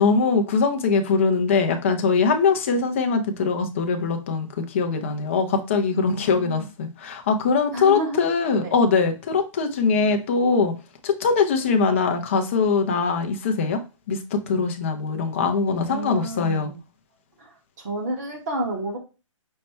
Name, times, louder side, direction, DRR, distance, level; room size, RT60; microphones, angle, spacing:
voice 1, 0.0-10.7 11.0-13.8 14.1-16.7, left 5 dB, 25° left, 6 dB, 0.5 m, -22 dB
voice 2, 5.9-6.7 7.7-8.2 8.6-8.7 15.9-16.8 17.4-17.5 17.8-19.0, right 1 dB, 30° right, 1 dB, 1.2 m, -30 dB
5.4 x 2.2 x 4.2 m, 0.31 s
hypercardioid pair, 165°, 17 cm